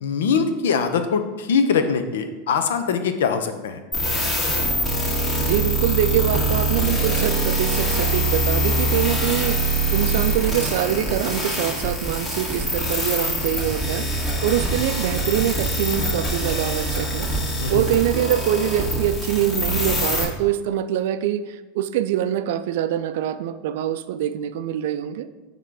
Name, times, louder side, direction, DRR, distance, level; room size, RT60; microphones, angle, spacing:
voice 1, 0.0-3.8 17.6-17.8, left 6 dB, 85° left, 8 dB, 0.6 m, -22 dB
sound 1, 3.9-20.2, right 1 dB, 20° left, 1.6 m, -24 dB
voice 2, 5.4-9.6 9.9-14.1 14.4-17.3 17.7-25.3, right 11 dB, 70° right, 12 dB, 0.3 m, -24 dB
5.7 x 3.6 x 4.8 m, 1.2 s
hypercardioid pair, 110°, 0 cm